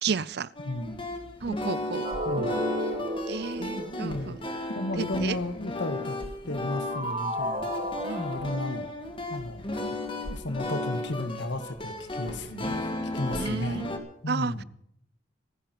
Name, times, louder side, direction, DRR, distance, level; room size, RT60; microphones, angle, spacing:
voice 1, 0.0-0.5 1.4-2.1 3.3-4.4 4.9-5.4 8.0-8.3 12.5-12.6 13.3-13.9 14.3-14.6, right 5 dB, 60° right, 20 dB, 0.5 m, -32 dB
voice 2, 0.6-1.0 2.3-2.6 3.6-4.4 4.7-6.2 6.5-7.7 8.2-8.9 9.3-9.9 10.3-12.9 13.1-13.9 14.2-14.6, left 1 dB, 70° left, 9 dB, 1.8 m, -33 dB
sound 1, 0.6-14.0, left 2 dB, 30° left, 2.0 m, -35 dB
sound 2, 2.0-5.0 6.8-8.6, equal, 35° right, 4.3 m, -33 dB
26.0 x 10.0 x 4.6 m, 0.72 s
head